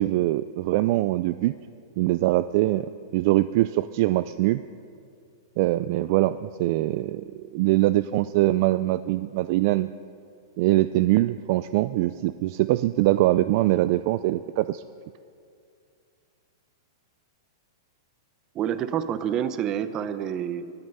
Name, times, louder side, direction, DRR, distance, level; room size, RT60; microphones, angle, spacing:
voice 1, 0.0-1.5 2.0-4.6 5.6-9.9 10.6-14.8, right 16 dB, 50° right, 14 dB, 0.3 m, -23 dB
voice 2, 18.5-20.7, right 9 dB, 30° right, 13 dB, 0.7 m, -28 dB
22.5 x 9.6 x 5.5 m, 2.4 s
hypercardioid pair, 135°, 2 cm